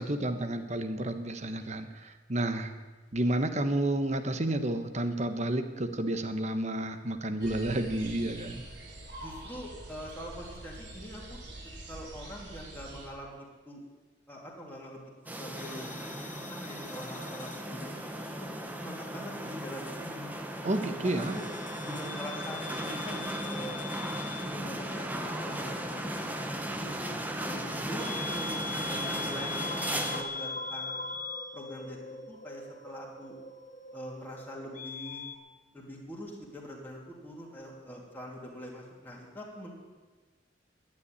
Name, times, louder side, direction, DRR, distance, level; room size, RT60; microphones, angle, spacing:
voice 1, 0.0-2.7 3.1-8.6 20.6-21.4, right 1 dB, 40° right, 8 dB, 1.1 m, -31 dB
sound 1, 7.4-13.1, right 1 dB, 80° right, 4.2 m, -45 dB
voice 2, 9.2-11.4 11.9-13.8 14.3-15.0 15.3-15.9 16.3-18.0 18.4-20.3 20.7-21.5 21.8-23.8 24.5-26.5 26.7-26.9 27.4-31.0 31.5-32.0 32.3-33.4 33.9-35.2 35.7-39.7, equal, 10° left, -4 dB, 2.8 m, -43 dB
sound 2, 15.3-30.2, right 1 dB, 10° right, 1.1 m, -36 dB
sound 3, 15.6-18.4 18.7-19.9 21.1-35.4, left 4 dB, 45° left, 1.0 m, -42 dB
11.5 x 9.7 x 9.8 m, 1.3 s
head